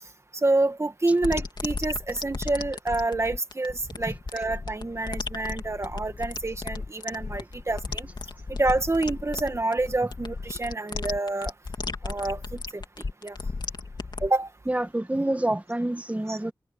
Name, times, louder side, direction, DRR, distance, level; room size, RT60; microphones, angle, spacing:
voice 1, 0.3-8.1 8.5-11.5 12.0-12.8 13.2-13.4 14.2-14.5 16.3-16.4, right 2 dB, 35° right, 1.7 m, -27 dB
sound 1, 1.2-14.3, left 3 dB, 70° left, 2.9 m, -35 dB
voice 2, 14.7-16.5, right 1 dB, 20° right, 1.3 m, -27 dB
wide cardioid pair, 65°, 8 cm